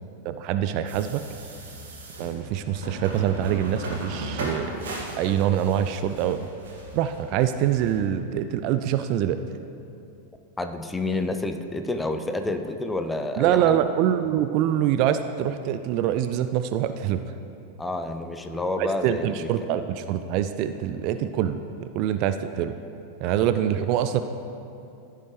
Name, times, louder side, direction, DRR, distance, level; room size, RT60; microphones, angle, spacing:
voice 1, 0.3-1.2 2.2-4.8 5.2-6.5 6.9-9.4 13.4-17.2 18.8-22.7 23.2-24.2, right 10 dB, 40° right, 10 dB, 0.3 m, -25 dB
sound 1, 0.9-8.0, right 1 dB, 60° right, 1.9 m, -37 dB
voice 2, 10.6-13.6 17.8-19.5 23.7-23.9, left 2 dB, 10° left, 7 dB, 0.5 m, -29 dB
14.5 x 5.7 x 3.1 m, 2.7 s
figure-of-eight pair, 90°, 0 cm